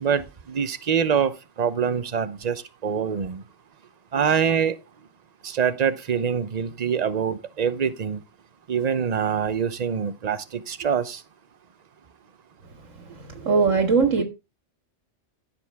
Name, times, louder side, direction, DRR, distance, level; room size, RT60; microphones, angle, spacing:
voice 1, 0.0-1.3 1.6-3.4 4.1-4.8 5.4-8.2 8.7-11.2, right 7 dB, 40° right, 0.8 m, -25 dB
voice 2, 13.1-14.2, right 5 dB, 80° right, 2.1 m, -21 dB
14.5 x 7.0 x 3.5 m
omnidirectional pair, 1.3 m